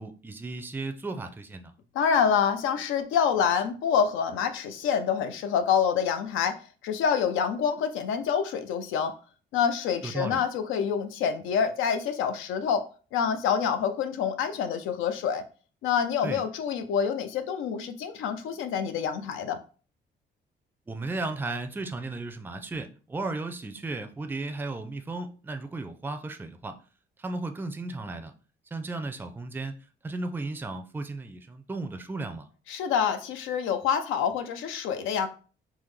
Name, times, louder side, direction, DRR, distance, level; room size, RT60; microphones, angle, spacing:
voice 1, 0.0-1.7 10.0-10.4 16.2-16.4 20.9-26.8 27.2-28.3 28.7-29.7 30.0-32.5, right 3 dB, 10° right, 8 dB, 0.4 m, -35 dB
voice 2, 1.9-9.2 9.5-12.9 13.1-15.4 15.8-19.6 32.7-35.3, left 7 dB, 90° left, 8 dB, 0.5 m, -27 dB
3.5 x 2.1 x 3.2 m, 0.38 s
cardioid pair, 90°, 20 cm